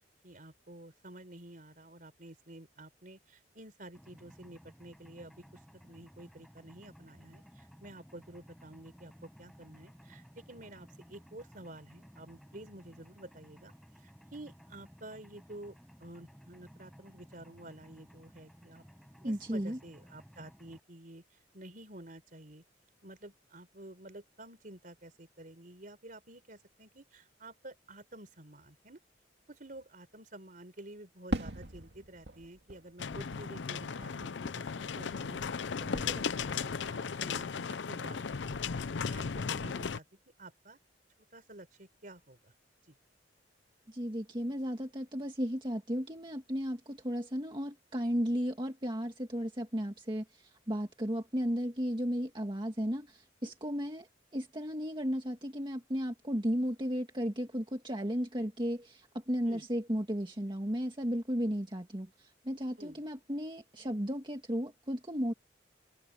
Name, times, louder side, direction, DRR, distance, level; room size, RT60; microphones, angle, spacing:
voice 1, 0.2-13.7 14.0-15.7 16.0-18.8 19.2-21.2 21.5-22.6 23.0-29.0 29.5-40.1 40.4-40.8 41.3-42.5 42.9-43.0 59.5-59.6 62.8-63.0, right 1 dB, 50° right, 4.1 m, -50 dB
Mechanisms, 3.9-20.8, equal, ahead, 7.5 m, -57 dB
voice 2, 19.2-19.8 43.9-54.1 54.3-65.3, equal, 25° right, 1.9 m, -34 dB
Fireworks, 31.3-35.7 35.9-36.7, right 1 dB, 70° right, 2.3 m, -42 dB
sound 1, 33.0-40.0, left 6 dB, 80° left, 0.6 m, -36 dB
head